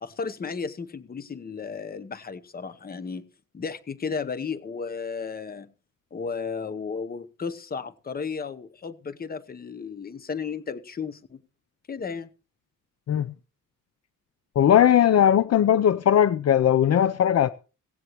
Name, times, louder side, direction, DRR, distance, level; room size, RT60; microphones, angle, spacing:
voice 1, 0.0-3.3 3.5-5.7 6.1-11.4 11.9-12.3, left 5 dB, 30° left, 0.9 m, -34 dB
voice 2, 14.6-17.5, left 10 dB, 50° left, 0.6 m, -19 dB
17.5 x 16.0 x 3.0 m
wide cardioid pair, 180°, 32 cm